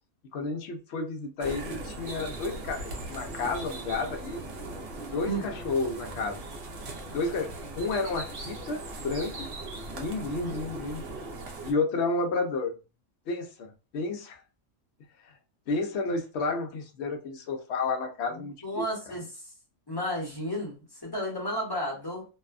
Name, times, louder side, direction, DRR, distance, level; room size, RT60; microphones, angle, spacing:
voice 1, 0.3-4.4 5.0-6.4 7.1-9.5 9.9-11.0 11.6-12.7 13.3-14.4 15.2-15.3 15.7-19.1, left 3 dB, 65° left, 0.8 m, -31 dB
sound 1, 1.4-11.7, right 2 dB, 55° right, 0.8 m, -39 dB
voice 2, 18.4-19.4 19.9-22.2, equal, 20° left, 1.0 m, -33 dB
2.6 x 2.2 x 2.4 m
omnidirectional pair, 1.4 m